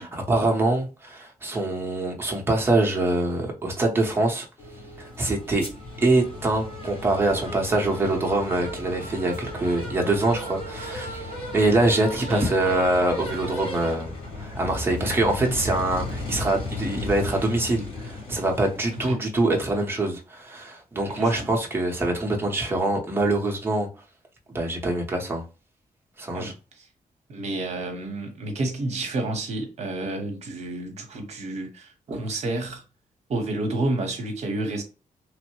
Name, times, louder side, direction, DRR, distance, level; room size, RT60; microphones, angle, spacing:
voice 1, 0.0-4.5 5.0-5.6 6.0-23.9 24.5-25.4 26.2-26.5, right 2 dB, 15° right, 0.7 m, -24 dB
sound 1, 4.6-19.2, left 1 dB, 40° left, 1.4 m, -35 dB
voice 2, 18.9-19.2 21.1-21.5 26.3-26.5 27.3-32.8 33.3-34.8, right 2 dB, 50° right, 0.8 m, -30 dB
3.1 x 2.0 x 2.9 m
wide cardioid pair, 180°, 14 cm